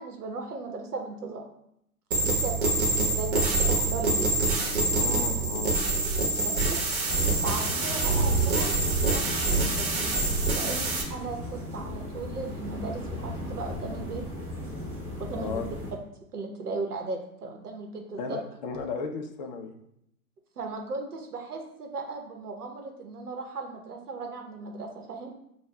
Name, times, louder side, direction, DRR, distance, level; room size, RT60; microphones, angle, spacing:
voice 1, 0.0-1.4 2.2-4.3 6.4-6.8 7.4-8.7 9.0-10.3 10.5-14.2 15.2-15.7 16.3-18.4 20.6-25.3, right 3 dB, 80° right, 3 dB, 0.9 m, -37 dB
sound 1, 2.1-11.0, right 2 dB, 50° right, 1.0 m, -25 dB
voice 2, 4.9-5.8 15.3-15.7 18.2-19.7, left 5 dB, 35° left, 4 dB, 0.4 m, -35 dB
sound 2, 7.0-15.9, left 1 dB, 5° right, 0.8 m, -36 dB
6.8 x 2.3 x 2.2 m, 0.76 s
figure-of-eight pair, 115°, 45 cm